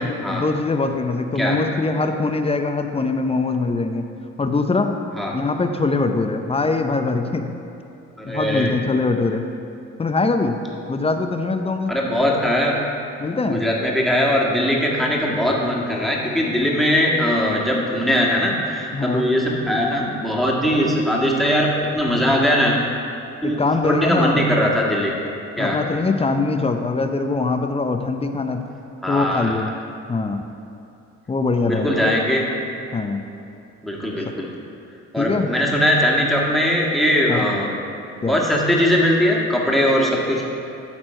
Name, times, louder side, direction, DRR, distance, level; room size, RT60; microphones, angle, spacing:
voice 1, 0.0-4.1 4.4-4.9 5.3-7.5 8.3-9.5 10.0-10.6 10.9-11.9 13.2-13.6 18.9-19.3 23.4-24.4 25.6-28.6 29.1-29.7 30.1-30.4 31.3-32.0 32.9-33.2 35.2-35.5 37.3-37.5 38.2-38.4, left 3 dB, 20° left, 6 dB, 0.6 m, -22 dB
voice 2, 8.2-8.7 11.9-12.8 13.5-22.8 23.4-25.1 25.6-25.8 29.0-29.7 31.6-32.5 33.8-34.5 35.1-37.7 38.2-40.4, equal, ahead, -4 dB, 1.7 m, -20 dB
12.5 x 4.4 x 4.4 m, 2.7 s
supercardioid pair, 70°, 29 cm